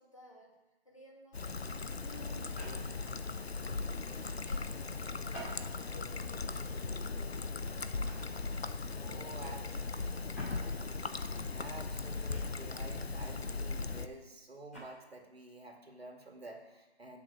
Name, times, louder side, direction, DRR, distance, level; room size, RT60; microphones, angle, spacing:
voice 1, 0.0-8.3 9.0-11.2, left 1 dB, 30° left, -1 dB, 1.9 m, -57 dB
Trickle dribble, 1.3-14.1, left 3 dB, 75° left, 0.9 m, -38 dB
sound 1, 2.5-3.1 5.3-6.1 6.7-6.9 8.1-8.4 10.3-10.6 12.3-12.8 14.5-14.9, right 1 dB, 15° left, 2.6 m, -49 dB
voice 2, 8.9-9.6 9.9-10.4 11.5-17.2, right 2 dB, 70° right, 3 dB, 2.4 m, -50 dB
15.5 x 7.3 x 4.8 m, 1.1 s
figure-of-eight pair, 175°, 32 cm